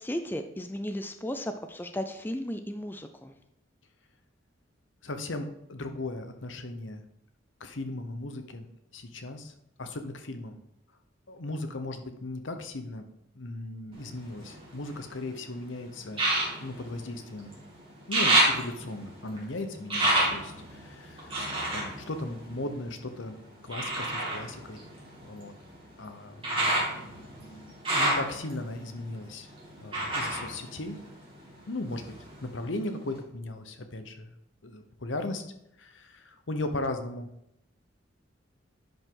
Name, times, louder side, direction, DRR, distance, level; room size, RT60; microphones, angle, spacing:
voice 1, 0.0-3.3, equal, 10° left, 7 dB, 0.4 m, -35 dB
voice 2, 5.0-7.0 7.6-8.7 8.9-9.5 9.8-10.6 11.3-13.0 13.3-16.2 16.6-17.5 18.1-21.4 21.7-23.4 23.6-24.8 25.2-25.5 26.0-29.5 29.8-31.0 31.7-32.1 32.4-34.3 34.6-35.4 35.8-37.3, left 2 dB, 75° left, 8 dB, 1.0 m, -37 dB
sound 1, 13.9-15.3 16.1-17.6 17.9-23.1 23.7-31.5 31.9-32.7 33.2-33.3, right 1 dB, 25° right, 2.6 m, -30 dB
10.5 x 5.4 x 3.8 m, 0.79 s
head